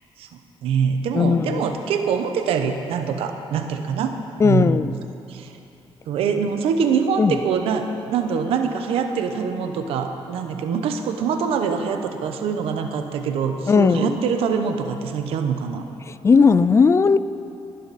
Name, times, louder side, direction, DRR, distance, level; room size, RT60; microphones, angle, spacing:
voice 1, 0.6-4.9 5.3-5.5 6.1-15.8, right 6 dB, 90° right, 6 dB, 0.9 m, -24 dB
voice 2, 1.1-1.6 4.4-4.9 7.2-7.4 13.7-14.2 16.2-17.2, left 5 dB, 30° left, 15 dB, 0.4 m, -16 dB
19.0 x 10.5 x 4.2 m, 2.8 s
cardioid pair, 90°, 9 cm